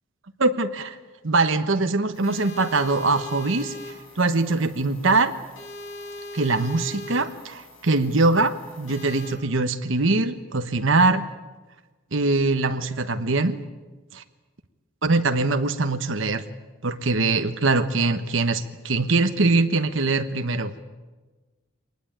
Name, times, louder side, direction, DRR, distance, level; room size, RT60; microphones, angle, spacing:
voice 1, 0.4-1.0 1.2-3.7 4.2-5.3 6.3-11.2 12.1-13.6 14.1-14.2 15.0-16.4 16.8-20.8, right 3 dB, 65° right, 9 dB, 1.2 m, -22 dB
sound 1, 2.1-9.3, left 1 dB, 65° left, 5.8 m, -40 dB
24.0 x 20.0 x 8.8 m, 1.3 s
head